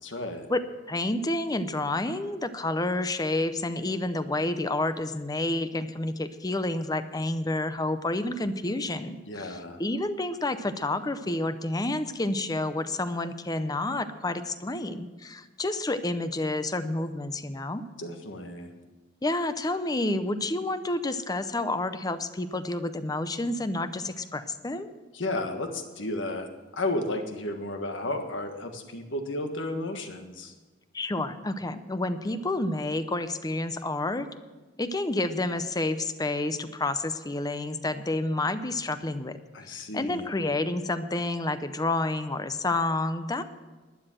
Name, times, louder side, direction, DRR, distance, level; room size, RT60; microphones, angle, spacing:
voice 1, 0.0-0.5 9.3-9.8 18.0-18.7 25.1-30.5 39.5-40.3, left 2 dB, 75° left, 5 dB, 1.6 m, -33 dB
voice 2, 0.9-17.8 19.2-24.9 30.9-34.3 34.8-39.4 39.9-43.4, left 2 dB, 20° left, 11 dB, 0.6 m, -29 dB
12.0 x 9.9 x 7.7 m, 1.2 s
head